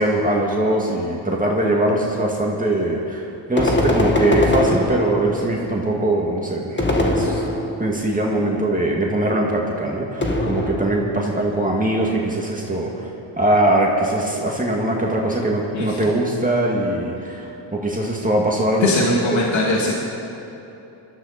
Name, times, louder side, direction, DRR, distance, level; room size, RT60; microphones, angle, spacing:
voice 1, 0.0-7.4 7.8-13.1 13.4-19.2, right 1 dB, 15° right, -2 dB, 2.1 m, -21 dB
sound 1, 3.6-5.5 6.8-8.0 10.2-11.2, left 1 dB, 20° left, 1.7 m, -21 dB
voice 2, 18.7-19.9, left 2 dB, 70° left, -3 dB, 2.6 m, -21 dB
20.0 x 13.5 x 4.3 m, 3.0 s
cardioid pair, 90°, 48 cm